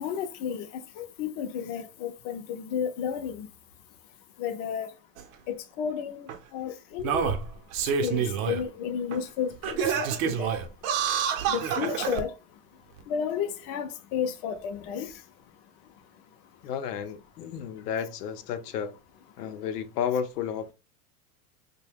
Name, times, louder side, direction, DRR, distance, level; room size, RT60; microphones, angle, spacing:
voice 1, 0.0-3.5 4.4-4.9 5.5-7.4 7.8-10.6 11.4-12.6 13.0-15.3, left 8 dB, 40° left, 0.5 m, -33 dB
Singing, 5.2-5.3 6.3-6.4 7.0-8.6 9.1-9.2 9.6-12.2 13.0-13.1, right 7 dB, 60° right, 0.7 m, -28 dB
voice 2, 16.6-18.9 19.4-20.7, left 8 dB, 80° left, 0.7 m, -32 dB
2.7 x 2.2 x 3.4 m
supercardioid pair, 140°, 46 cm